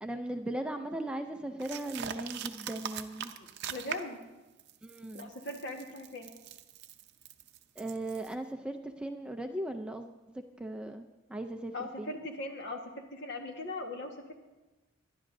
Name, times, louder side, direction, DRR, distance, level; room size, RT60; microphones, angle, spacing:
voice 1, 0.0-3.3 4.8-5.3 7.8-12.1, right 1 dB, 5° right, 5 dB, 0.4 m, -38 dB
sound 1, 1.6-4.2 4.6-8.4, right 8 dB, 55° right, 0.6 m, -42 dB
voice 2, 3.4-4.2 5.1-6.3 11.7-14.2, left 2 dB, 55° left, 3 dB, 1.4 m, -40 dB
22.5 x 11.0 x 2.6 m, 1.1 s
head